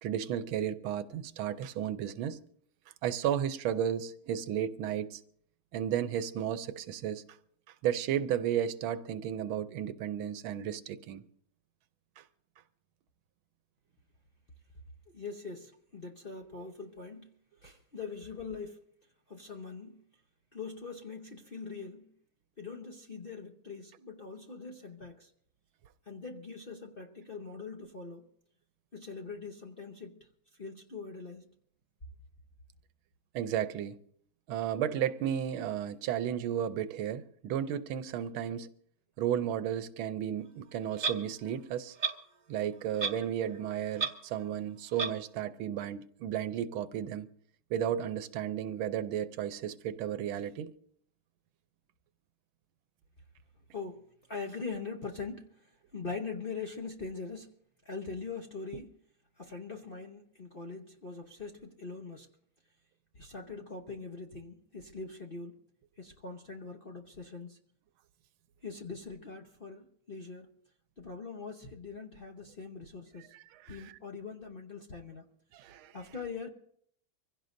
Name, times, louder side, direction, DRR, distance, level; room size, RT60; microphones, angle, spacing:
voice 1, 0.0-2.4 3.0-5.2 5.7-7.2 7.8-11.2 12.2-12.3 33.3-34.0 34.5-38.7 39.2-42.0 42.5-47.3 47.7-50.7 73.3-73.9 75.5-75.9, right 10 dB, 85° right, 1.6 m, -33 dB
voice 2, 15.1-17.3 17.6-18.8 19.3-20.0 20.5-22.1 22.6-25.3 26.1-28.2 28.9-30.2 30.6-31.5 53.7-54.0 54.3-55.5 55.9-57.5 57.8-58.9 59.4-62.3 63.1-65.5 66.0-67.6 68.6-70.5 71.0-73.3 73.7-75.2 75.9-76.5, left 4 dB, 40° left, 0.8 m, -42 dB
Clock, 41.0-41.2 42.0-42.1 43.0-43.2 43.5-43.6 44.0-44.1 45.0-45.1, right 5 dB, 40° right, 0.6 m, -31 dB
25.0 x 16.0 x 2.6 m
omnidirectional pair, 2.2 m